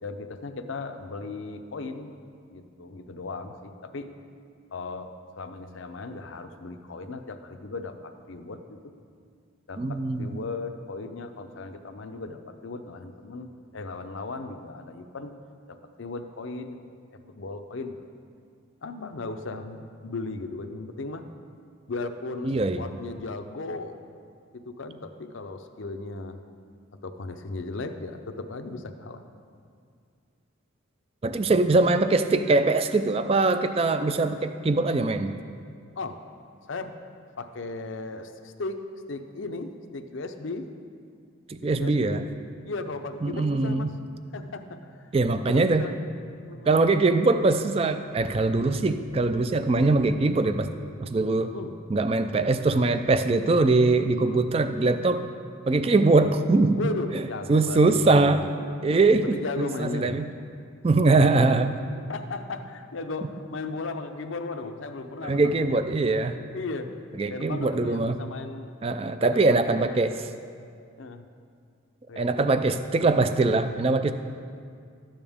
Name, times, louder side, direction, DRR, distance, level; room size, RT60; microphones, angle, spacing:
voice 1, 0.0-2.2 2.5-4.1 4.7-8.9 9.7-15.3 15.7-17.0 17.3-18.0 18.8-21.3 21.9-24.0 24.5-26.4 27.0-29.2 36.0-36.2 36.7-37.0 37.4-40.7 41.8-42.3 42.6-44.0 44.3-45.1 45.4-46.0 46.5-46.8 51.5-51.7 54.2-54.4 56.0-56.3 56.8-58.4 59.2-60.2 61.2-61.5 62.1-65.8 66.5-66.9 67.3-68.7 69.2-69.4 69.7-70.0 71.0-71.2 72.1-72.8, left 3 dB, 70° left, 7 dB, 0.6 m, -36 dB
voice 2, 9.8-10.4 22.4-22.8 31.2-35.4 41.5-42.3 43.2-43.9 45.1-45.8 46.7-50.7 51.0-51.5 51.9-55.2 55.7-56.8 57.1-57.2 57.5-58.5 58.8-60.3 60.8-61.7 65.2-66.4 67.2-68.2 68.8-70.2 72.2-74.1, right 3 dB, 30° right, 9 dB, 0.3 m, -22 dB
13.0 x 8.9 x 3.6 m, 2.2 s
head